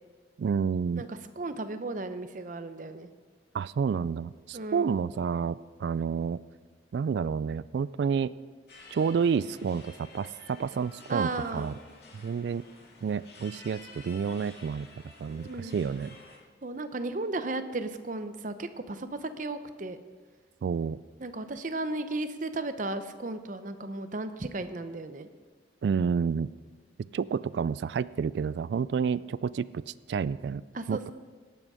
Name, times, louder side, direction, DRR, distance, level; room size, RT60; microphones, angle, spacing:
voice 1, 0.4-1.1 3.5-6.4 6.9-8.3 8.9-11.7 12.1-12.6 13.0-14.9 15.2-16.2 20.6-21.0 25.8-26.5 27.1-30.6 30.9-31.1, right 6 dB, 70° right, 19 dB, 0.3 m, -29 dB
voice 2, 1.0-3.1 4.5-5.0 11.1-11.7 15.5-15.8 16.6-20.0 21.2-25.3 30.7-31.1, right 2 dB, 45° right, 10 dB, 0.7 m, -35 dB
sound 1, 8.7-16.4, left 3 dB, 60° left, 2.7 m, -51 dB
18.0 x 7.8 x 4.9 m, 1.4 s
head